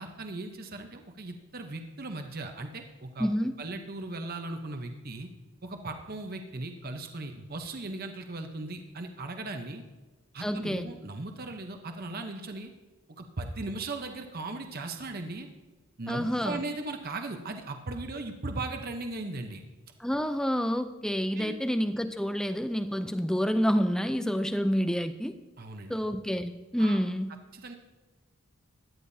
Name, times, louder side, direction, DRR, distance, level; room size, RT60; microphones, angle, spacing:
voice 1, 0.0-3.3 3.6-5.3 5.6-9.8 10.3-12.7 13.2-15.5 16.0-19.6 21.3-21.5 25.6-25.9 26.8-27.0 27.5-27.8, right 2 dB, 40° right, 5 dB, 0.8 m, -38 dB
voice 2, 3.2-3.6 10.4-10.8 16.1-16.6 20.0-25.3 25.9-27.3, equal, 5° left, 10 dB, 0.4 m, -28 dB
17.0 x 11.5 x 2.7 m, 1.2 s
head